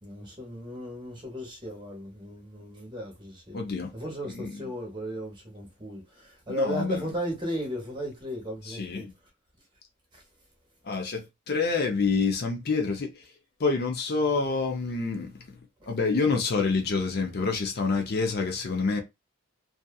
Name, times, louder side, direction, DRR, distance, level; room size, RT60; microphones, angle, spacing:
voice 1, 0.0-3.7 3.9-9.1 10.1-10.2 15.8-15.9, equal, 20° right, 1.0 m, -35 dB
voice 2, 3.5-3.9 4.3-4.7 6.5-7.1 8.6-9.1 10.8-13.3 13.6-15.3 15.9-19.0, left 4 dB, 45° left, 0.5 m, -27 dB
2.7 x 2.4 x 2.3 m
head